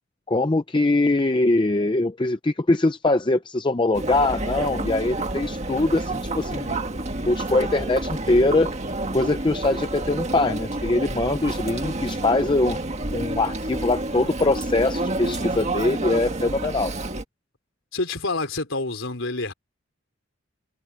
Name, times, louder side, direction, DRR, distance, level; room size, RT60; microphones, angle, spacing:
voice 1, 0.3-6.8 7.3-8.7 9.1-12.8 13.1-16.9, left 2 dB, 25° left, 0.6 m, -22 dB
Chatter, 3.9-17.2, right 2 dB, 35° right, 1.7 m, -29 dB
voice 2, 17.9-19.5, left 3 dB, 70° left, 4.3 m, -27 dB
head